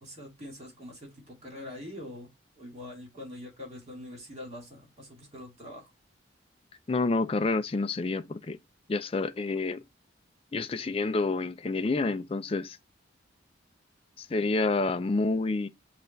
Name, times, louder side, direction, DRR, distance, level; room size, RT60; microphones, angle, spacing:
voice 1, 0.0-2.3 2.6-5.9, left 1 dB, 35° right, 2.1 m, -44 dB
voice 2, 6.9-8.6 8.9-9.8 10.5-12.8 14.2-15.7, left 3 dB, 30° left, 0.4 m, -28 dB
5.5 x 2.4 x 3.8 m
head